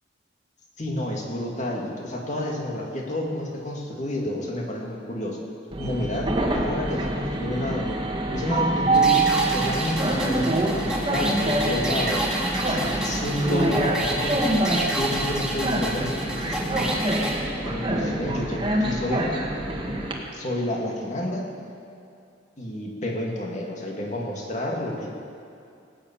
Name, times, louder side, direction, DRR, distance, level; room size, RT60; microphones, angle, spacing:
voice 1, 0.8-5.4 5.8-8.0 8.3-12.2 12.6-14.6 15.0-17.0 17.6-19.3 20.3-21.5 22.6-25.1, left 1 dB, 40° left, -1 dB, 2.3 m, -30 dB
Train, 5.7-20.1, right 2 dB, 25° right, 1.6 m, -25 dB
sound 1, 8.9-17.4, right 1 dB, 5° right, 2.0 m, -30 dB
18.5 x 7.2 x 8.9 m, 2.5 s
head